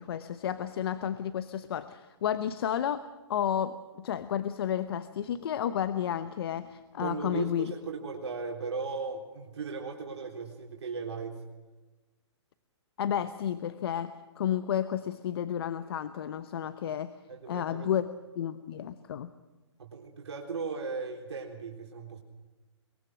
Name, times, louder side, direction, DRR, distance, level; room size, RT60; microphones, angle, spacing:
voice 1, 0.0-7.7 13.0-17.1 17.5-18.1 18.4-19.3, left 9 dB, 55° left, 11 dB, 1.0 m, -32 dB
voice 2, 7.0-11.4 17.3-17.9 19.8-22.2, right 4 dB, 70° right, -1 dB, 3.9 m, -37 dB
23.0 x 22.0 x 6.3 m, 1.2 s
hypercardioid pair, 135°, 15 cm